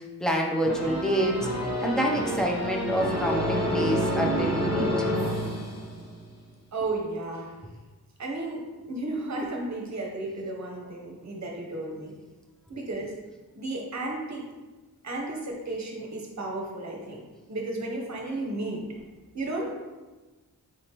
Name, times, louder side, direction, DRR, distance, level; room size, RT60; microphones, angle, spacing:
voice 1, 0.0-1.5 1.8-4.9, equal, ahead, 0 dB, 0.5 m, -27 dB
sound 1, 0.6-6.3, equal, 40° left, 1.0 m, -28 dB
voice 2, 6.7-7.6 8.2-12.1 12.7-13.1 13.5-14.5 15.0-17.2 17.5-18.9 19.3-19.7, right 2 dB, 45° right, 0 dB, 0.9 m, -33 dB
5.0 x 3.4 x 2.9 m, 1.2 s
wide cardioid pair, 135°, 38 cm